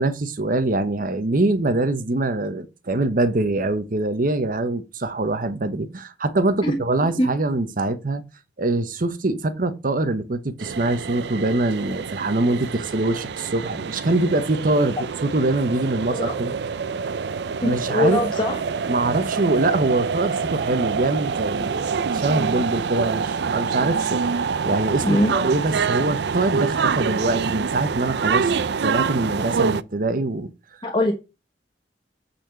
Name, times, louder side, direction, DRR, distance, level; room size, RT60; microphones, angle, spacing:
voice 1, 0.0-8.2 8.6-16.5 17.6-18.3 18.9-24.2 24.6-30.5, right 2 dB, 50° right, 0.8 m, -23 dB
sound 1, 10.6-29.8, right 5 dB, 65° right, 0.5 m, -26 dB
voice 2, 17.6-18.6 25.0-25.3 30.8-31.1, left 1 dB, 25° left, 1.1 m, -22 dB
9.1 x 4.3 x 5.8 m
head